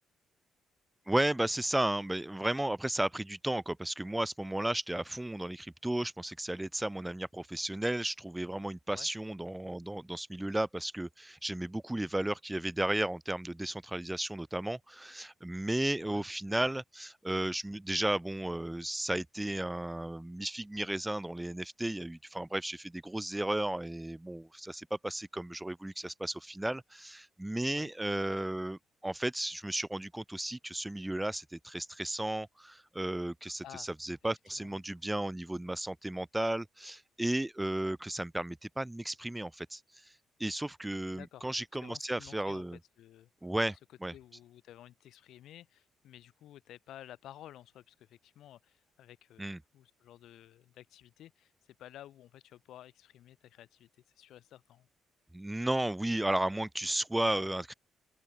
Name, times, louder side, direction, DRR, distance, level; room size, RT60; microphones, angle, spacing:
voice 1, 1.1-42.8 43.4-43.8 44.0-44.1 49.4-49.6 55.3-57.7, right 1 dB, 5° right, 0.5 m, -34 dB
voice 2, 41.1-41.5 41.8-43.3 44.1-51.5 51.8-53.9 54.1-54.9, left 12 dB, 75° left, 5.7 m, -53 dB
open air
cardioid pair, 175°, 0 cm